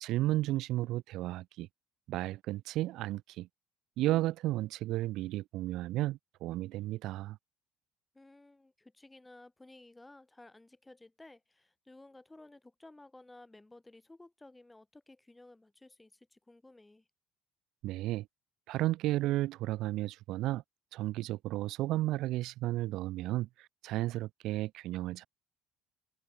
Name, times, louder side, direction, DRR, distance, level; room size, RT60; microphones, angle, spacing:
voice 1, 0.0-1.7 2.1-3.5 4.0-7.4 17.8-18.3 18.7-20.6 20.9-25.3, right 16 dB, 70° right, 0.3 m, -33 dB
voice 2, 8.1-17.1, left 2 dB, 10° left, 2.0 m, -56 dB
cardioid pair, 110°, 0 cm